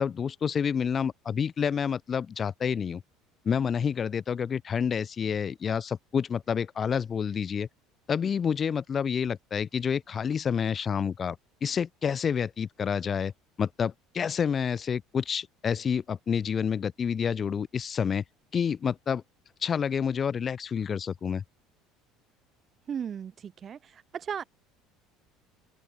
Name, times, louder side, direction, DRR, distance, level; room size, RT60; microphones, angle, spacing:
voice 1, 0.0-3.0 3.4-7.7 8.1-11.4 11.6-13.3 13.6-18.2 18.5-19.2 19.6-21.4, left 7 dB, 35° left, 0.5 m, -28 dB
voice 2, 22.9-23.8 24.1-24.4, right 8 dB, 35° right, 0.5 m, -35 dB
open air
figure-of-eight pair, 65°, 0 cm